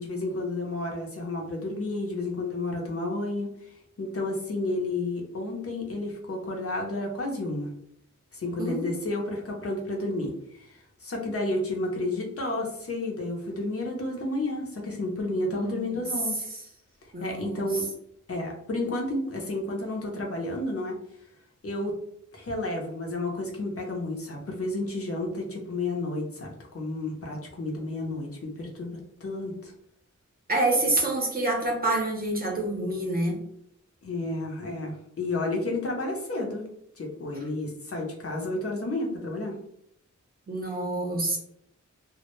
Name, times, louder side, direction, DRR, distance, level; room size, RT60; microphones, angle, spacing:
voice 1, 0.0-7.7 8.3-16.5 17.2-17.9 18.3-21.0 21.6-21.9 22.3-29.7 34.0-36.7 37.0-39.6, left 2 dB, 50° left, -1 dB, 0.6 m, -31 dB
voice 2, 8.6-9.0 15.5-16.0 17.1-17.8 30.5-33.4 40.5-41.4, right 2 dB, 30° right, -1 dB, 0.7 m, -27 dB
2.1 x 2.1 x 2.9 m, 0.72 s
wide cardioid pair, 85°, 30 cm